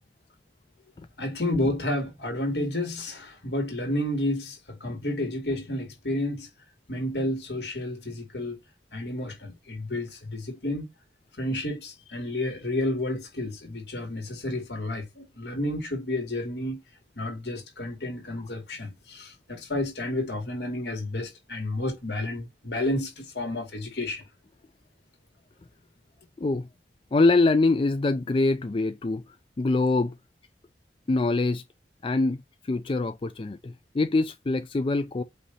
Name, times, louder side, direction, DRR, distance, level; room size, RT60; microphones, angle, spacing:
voice 1, 1.2-6.5 6.9-8.6 8.9-10.9 11.4-16.8 17.2-24.2, left 1 dB, 70° left, 2.5 m, -31 dB
voice 2, 27.1-30.2 31.1-31.6 32.0-35.2, left 3 dB, 30° left, 0.4 m, -24 dB
8.2 x 2.8 x 4.1 m
head